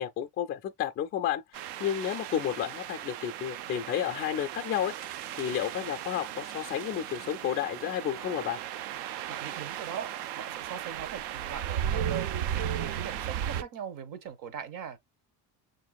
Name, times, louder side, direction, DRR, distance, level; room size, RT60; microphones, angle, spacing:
voice 1, 0.0-8.6, left 10 dB, 35° left, 0.4 m, -32 dB
sound 1, 1.5-13.6, right 10 dB, 75° right, 0.6 m, -36 dB
voice 2, 9.3-15.0, right 8 dB, 50° right, 0.9 m, -40 dB
6.6 x 2.6 x 2.3 m
cardioid pair, 170°, 42 cm